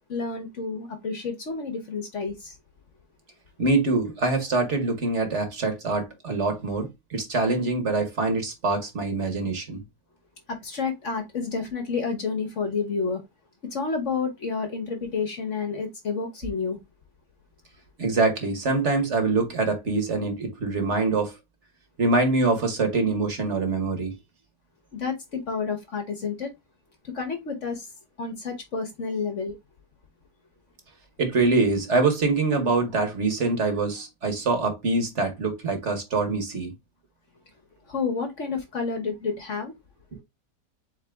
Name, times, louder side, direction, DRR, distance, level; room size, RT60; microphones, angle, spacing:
voice 1, 0.1-2.5 10.5-13.2 13.7-16.8 24.9-26.5 27.0-27.9 28.2-29.6 37.9-39.7, left 5 dB, 50° left, 1.1 m, -30 dB
voice 2, 3.6-9.8 18.0-21.3 22.0-24.2 31.2-36.7 40.1-40.2, right 3 dB, 45° right, 1.3 m, -24 dB
4.0 x 3.7 x 3.3 m
omnidirectional pair, 1.8 m